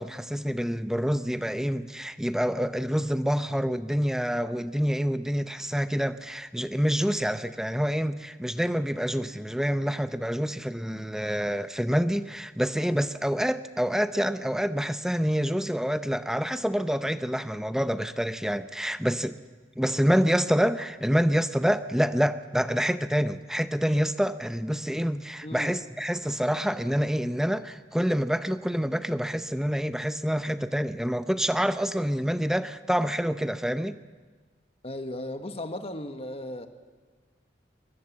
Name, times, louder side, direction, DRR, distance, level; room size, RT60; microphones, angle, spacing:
voice 1, 0.0-19.4 19.8-34.0, equal, 5° right, 11 dB, 0.7 m, -27 dB
voice 2, 25.4-25.8 34.8-36.7, left 1 dB, 35° left, 8 dB, 1.5 m, -36 dB
23.0 x 22.5 x 7.4 m, 1.4 s
head